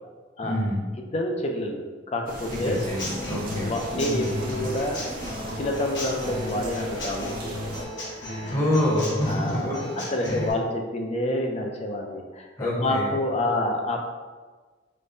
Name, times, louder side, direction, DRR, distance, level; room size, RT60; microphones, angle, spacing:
voice 1, 0.4-0.9 2.5-4.3 8.5-10.5 12.6-13.1, left 1 dB, 15° left, -5 dB, 0.8 m, -27 dB
voice 2, 1.0-2.8 3.5-5.2 5.5-8.6 9.3-9.8 10.1-14.0, left 1 dB, 35° left, 2 dB, 0.4 m, -28 dB
sound 1, 2.3-7.8, right 1 dB, 50° right, 0.6 m, -39 dB
Human voice / Acoustic guitar / Drum, 2.5-10.5, left 1 dB, 70° left, 1.1 m, -34 dB
5.0 x 2.1 x 2.6 m, 1.4 s
head